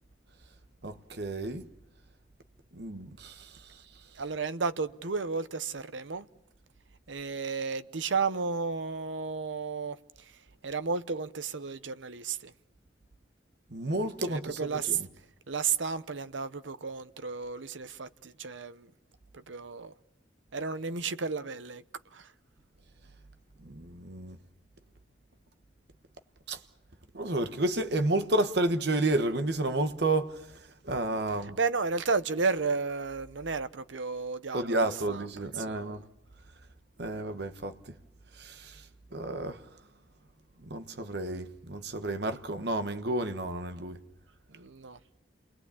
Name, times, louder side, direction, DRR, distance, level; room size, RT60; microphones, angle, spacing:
voice 1, 0.8-1.7 2.7-3.8 13.7-15.1 23.6-24.4 26.5-26.6 27.1-31.6 34.5-36.0 37.0-37.7 38.3-38.9 39.1-39.6 40.6-44.0, right 2 dB, 60° right, 1.3 m, -31 dB
voice 2, 4.2-6.3 7.1-10.3 10.6-12.5 14.3-15.0 15.5-18.9 19.3-19.9 20.5-21.8 22.1-22.3 31.6-36.0 44.5-45.0, right 4 dB, 90° right, 0.9 m, -33 dB
28.0 x 20.5 x 8.5 m
head